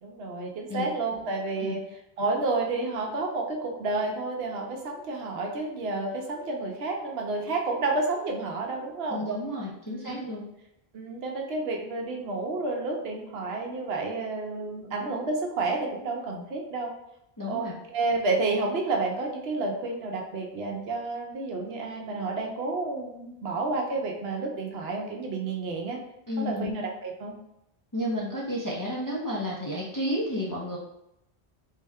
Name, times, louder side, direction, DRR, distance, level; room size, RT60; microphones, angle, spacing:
voice 1, 0.0-1.8 2.2-9.2 9.9-10.3 10.9-16.9 17.5-26.0 26.4-27.3, right 3 dB, 70° right, 1 dB, 0.9 m, -30 dB
voice 2, 9.1-10.5 17.4-17.8 26.3-26.7 27.9-30.8, left 1 dB, 30° left, -5 dB, 0.4 m, -31 dB
3.6 x 2.1 x 3.4 m, 0.81 s
omnidirectional pair, 1.1 m